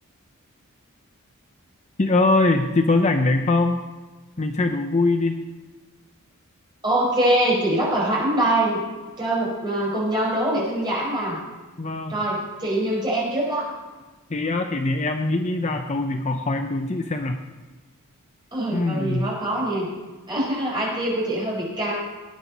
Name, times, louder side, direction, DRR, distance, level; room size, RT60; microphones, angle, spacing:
voice 1, 2.0-3.8 4.4-5.4 11.8-12.2 14.3-17.4 18.7-19.3, left 2 dB, 30° left, 5 dB, 0.6 m, -22 dB
voice 2, 6.8-8.8 9.2-11.4 12.1-13.7 18.5-19.9 20.3-21.9, right 1 dB, 20° right, -4 dB, 4.8 m, -23 dB
18.5 x 9.5 x 4.1 m, 1.3 s
head